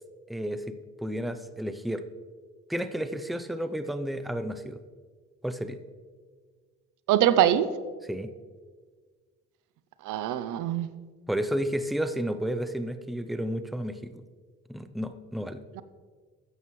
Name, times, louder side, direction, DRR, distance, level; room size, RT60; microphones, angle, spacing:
voice 1, 0.3-0.7 1.0-2.0 2.7-4.8 5.4-5.8 8.1-8.3 11.3-14.1 14.7-15.6, equal, ahead, 10 dB, 0.6 m, -31 dB
voice 2, 7.1-7.7 10.1-10.9, right 11 dB, 85° right, 14 dB, 0.6 m, -23 dB
13.5 x 9.2 x 3.2 m, 1.5 s
cardioid pair, 90°, 30 cm